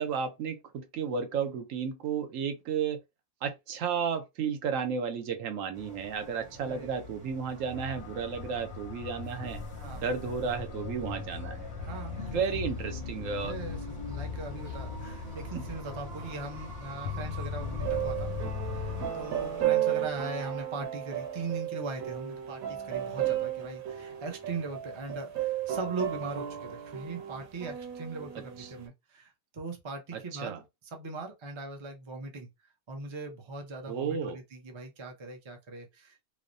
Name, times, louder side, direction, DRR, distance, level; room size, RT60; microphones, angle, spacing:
voice 1, 0.0-3.0 3.4-9.6 10.0-11.7 12.3-13.6 15.5-15.6 28.6-28.7 30.1-30.6 33.9-34.4, right 6 dB, 75° right, 0.9 m, -33 dB
sound 1, 5.7-19.7, equal, 25° right, 1.3 m, -46 dB
voice 2, 6.6-7.0 9.8-10.0 11.8-12.6 13.4-13.8 14.1-18.3 18.7-30.6 30.9-32.5 32.9-36.3, right 3 dB, 40° right, 0.4 m, -40 dB
sound 2, 7.7-19.1, left 5 dB, 65° left, 0.7 m, -39 dB
sound 3, 17.8-28.9, right 12 dB, 90° right, 1.2 m, -34 dB
3.1 x 2.0 x 2.5 m
omnidirectional pair, 1.4 m